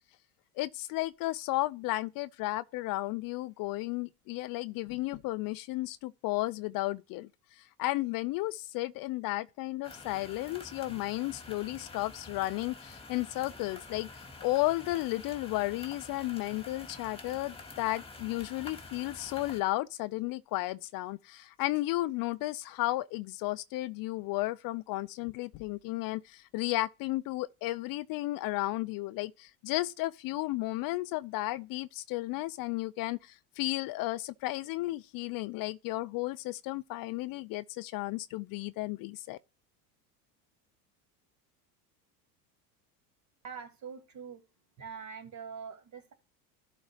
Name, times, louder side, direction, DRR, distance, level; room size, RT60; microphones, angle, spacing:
voice 1, 0.6-7.3 7.6-14.1 14.4-39.4, left 18 dB, 50° left, 0.6 m, -33 dB
sound 1, 9.8-19.6, left 3 dB, 10° left, 2.0 m, -48 dB
voice 2, 43.4-44.4 44.8-46.1, right 6 dB, 40° right, 2.7 m, -44 dB
12.0 x 4.3 x 4.8 m
hypercardioid pair, 90°, 45 cm